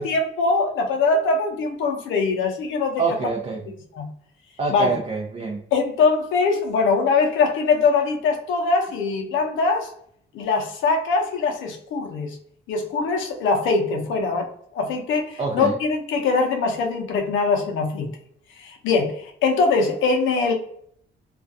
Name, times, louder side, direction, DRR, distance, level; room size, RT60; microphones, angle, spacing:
voice 1, 0.0-3.1 3.9-4.1 4.7-4.9 5.7-9.9 10.3-12.4 12.7-14.5 14.7-18.1 18.6-20.5, left 4 dB, 85° left, 3 dB, 0.6 m, -22 dB
voice 2, 3.0-3.6 4.6-5.6 15.4-15.7, right 4 dB, 35° right, -2 dB, 0.5 m, -26 dB
2.3 x 2.2 x 2.5 m, 0.64 s
cardioid pair, 90°, 20 cm